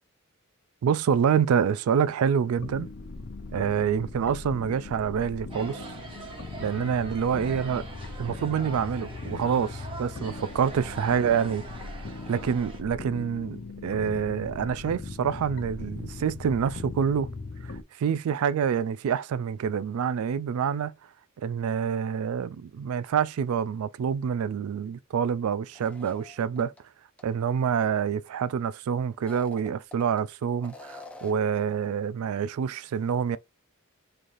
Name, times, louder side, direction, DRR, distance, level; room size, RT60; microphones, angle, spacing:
voice 1, 0.8-2.9 3.5-5.8 6.6-7.8 8.2-17.3 18.0-20.9 21.4-26.7 27.2-33.4, right 7 dB, 70° right, 0.3 m, -27 dB
sound 1, 2.6-17.8, left 3 dB, 55° left, 0.6 m, -39 dB
sound 2, 5.5-12.8, right 3 dB, 25° right, 0.9 m, -43 dB
sound 3, 25.7-26.8 27.2-27.3 29.1-30.2 30.6-31.5, left 2 dB, 5° left, 0.5 m, -47 dB
3.9 x 3.2 x 2.5 m
head